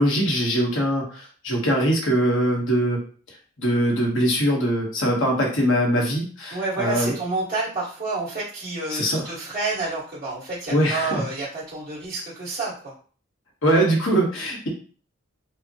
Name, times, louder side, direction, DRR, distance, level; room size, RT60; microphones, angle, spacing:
voice 1, 0.0-3.0 3.6-7.1 8.9-9.2 10.7-11.2 13.6-14.7, equal, 75° left, -1 dB, 1.2 m, -22 dB
voice 2, 6.5-12.9, right 3 dB, 45° right, -8 dB, 1.8 m, -29 dB
4.9 x 2.2 x 2.9 m, 0.42 s
head